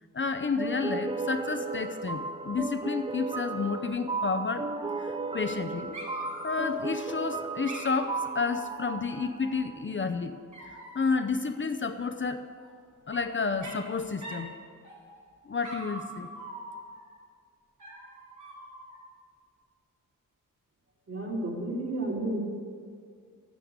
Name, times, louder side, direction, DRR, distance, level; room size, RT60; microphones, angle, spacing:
voice 1, 0.1-4.7 5.0-6.0 6.4-10.4 10.9-12.4 13.1-14.5 15.5-16.3, left 4 dB, 35° left, 7 dB, 0.6 m, -30 dB
sound 1, 0.6-9.8, right 3 dB, 15° right, 0.4 m, -35 dB
Dog, 4.7-5.6 5.9-7.1 7.7-9.7 10.5-11.2 12.6-13.2 13.6-13.9 14.2-14.5 14.8-15.3 15.6-17.1 17.8-19.0, right 2 dB, 60° right, 4.0 m, -44 dB
voice 2, 21.1-22.4, right 1 dB, 45° right, -2 dB, 3.3 m, -31 dB
13.0 x 9.4 x 8.0 m, 2.2 s
wide cardioid pair, 150°, 33 cm